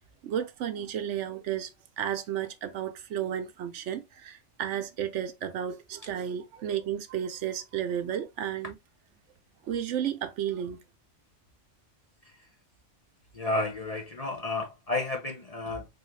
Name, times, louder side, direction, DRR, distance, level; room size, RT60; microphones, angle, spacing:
voice 1, 0.2-1.7 2.0-8.7 9.6-10.8, right 9 dB, 75° right, 0.9 m, -32 dB
voice 2, 13.3-15.9, left 2 dB, 40° left, 0.6 m, -31 dB
3.9 x 2.8 x 3.1 m
omnidirectional pair, 1.3 m